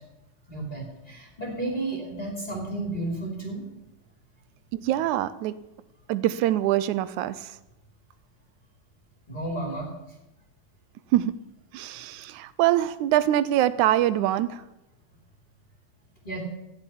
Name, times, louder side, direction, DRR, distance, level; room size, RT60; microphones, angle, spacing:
voice 1, 0.5-3.7 9.3-9.9 16.2-16.4, right 2 dB, 15° left, -1 dB, 2.9 m, -32 dB
voice 2, 4.7-5.6 6.1-7.6 11.1-11.4 11.7-14.6, right 13 dB, 85° right, 16 dB, 2.1 m, -24 dB
14.5 x 7.8 x 9.9 m, 0.95 s
omnidirectional pair, 3.4 m